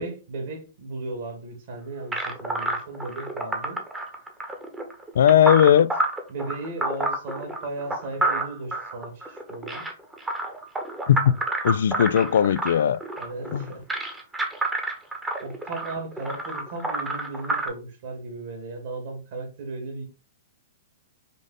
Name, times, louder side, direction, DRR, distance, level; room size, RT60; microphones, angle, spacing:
voice 1, 0.0-3.8 6.3-9.8 13.2-13.8 15.4-20.0, right 3 dB, 60° right, 2.1 m, -36 dB
sound 1, 2.1-17.7, right 2 dB, 10° right, 1.0 m, -29 dB
voice 2, 5.2-5.9 11.1-11.3 11.6-13.0 13.5-13.7, left 9 dB, 75° left, 0.3 m, -18 dB
5.2 x 2.5 x 4.1 m
hypercardioid pair, 135°, 0 cm